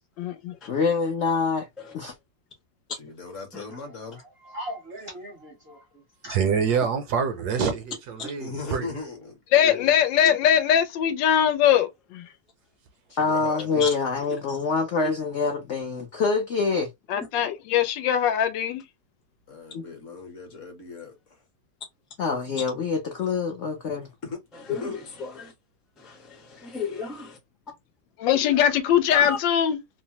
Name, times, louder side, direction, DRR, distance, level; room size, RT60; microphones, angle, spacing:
voice 1, 0.2-0.6 9.5-12.3 17.1-18.8 28.2-29.8, left 9 dB, 90° left, 1.3 m, -21 dB
voice 2, 0.7-1.7 1.9-2.1 13.2-16.9 19.7-19.8 22.2-24.1, left 4 dB, 70° left, 0.6 m, -25 dB
voice 3, 2.9-4.2 5.9-6.0 8.4-9.9 13.1-13.9 19.5-21.4 24.2-24.4 24.7-25.0, left 4 dB, 50° left, 1.1 m, -38 dB
voice 4, 4.1-5.9 6.2-6.4 6.7-6.8, equal, 50° right, 0.7 m, -39 dB
voice 5, 6.3-8.9, right 6 dB, 70° right, 1.0 m, -26 dB
voice 6, 24.7-25.5 26.0-27.4 29.1-29.4, left 5 dB, ahead, 0.4 m, -33 dB
3.1 x 2.0 x 2.8 m
omnidirectional pair, 1.9 m